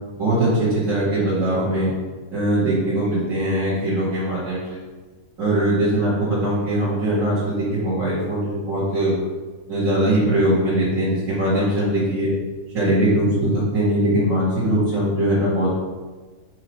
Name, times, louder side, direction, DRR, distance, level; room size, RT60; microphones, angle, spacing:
voice 1, 0.2-1.9 2.3-4.8 5.4-9.1 9.7-12.3 12.7-15.7, right 1 dB, 65° right, -13 dB, 2.6 m, -21 dB
6.5 x 3.1 x 5.5 m, 1.3 s
omnidirectional pair, 1.5 m